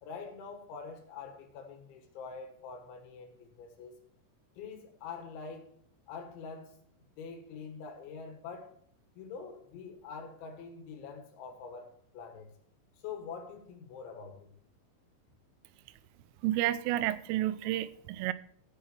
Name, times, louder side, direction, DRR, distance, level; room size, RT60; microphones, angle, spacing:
voice 1, 0.0-4.0 4.6-5.7 6.1-6.7 7.2-8.7 9.2-12.5 13.0-14.5, left 5 dB, 75° left, 4.0 m, -45 dB
voice 2, 16.4-18.3, right 14 dB, 90° right, 3.2 m, -30 dB
15.5 x 6.5 x 4.5 m
omnidirectional pair, 5.6 m